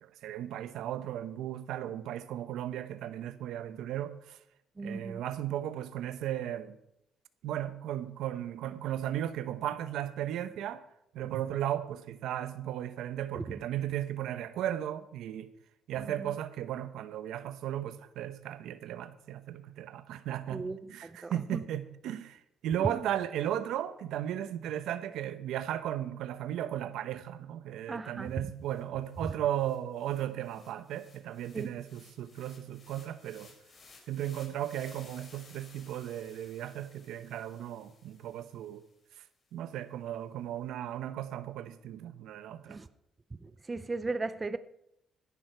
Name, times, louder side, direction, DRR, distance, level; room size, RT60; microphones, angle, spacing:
voice 1, 0.0-4.4 4.8-6.8 7.4-10.8 11.1-15.5 15.9-33.5 34.1-38.8 39.5-42.8, right 11 dB, 85° right, 0.9 m, -36 dB
voice 2, 4.8-5.2 13.3-13.4 16.0-16.3 20.5-21.6 22.8-23.0 27.9-28.3 31.5-31.7 42.7-42.9 43.4-44.6, right 3 dB, 20° right, 0.6 m, -37 dB
sound 1, 28.3-28.4 28.7-39.0, left 4 dB, 40° left, 4.5 m, -58 dB
16.5 x 11.0 x 4.6 m
cardioid pair, 125°, 0 cm